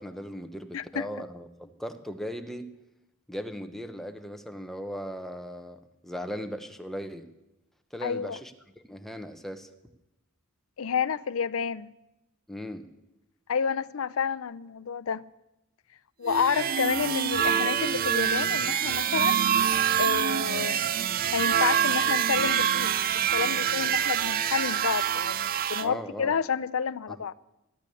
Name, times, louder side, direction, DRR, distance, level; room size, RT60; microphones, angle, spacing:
voice 1, 0.0-2.7 3.3-7.3 7.9-8.5 8.9-9.7 12.5-12.9 25.8-26.3 27.1-27.2, equal, ahead, 1.0 m, -38 dB
voice 2, 0.7-1.1 8.0-8.4 10.8-11.9 13.5-15.2 16.2-19.4 20.0-20.8 21.3-22.9 23.3-27.3, left 7 dB, 75° left, 0.5 m, -29 dB
sound 1, 16.3-25.9, right 9 dB, 45° right, 0.4 m, -26 dB
13.5 x 12.5 x 6.9 m
head